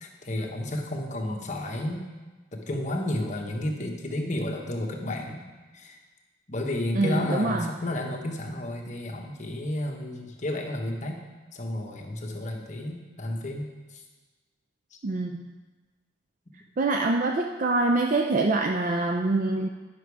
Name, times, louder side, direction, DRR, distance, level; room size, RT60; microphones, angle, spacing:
voice 1, 0.0-2.0 2.5-5.4 5.7-6.0 6.5-11.2 11.5-13.7 13.9-14.0, left 1 dB, 40° left, 1 dB, 1.1 m, -31 dB
voice 2, 6.9-7.7 15.0-15.5 16.8-19.7, right 2 dB, 45° right, 3 dB, 0.4 m, -25 dB
10.0 x 6.1 x 4.7 m, 1.3 s
head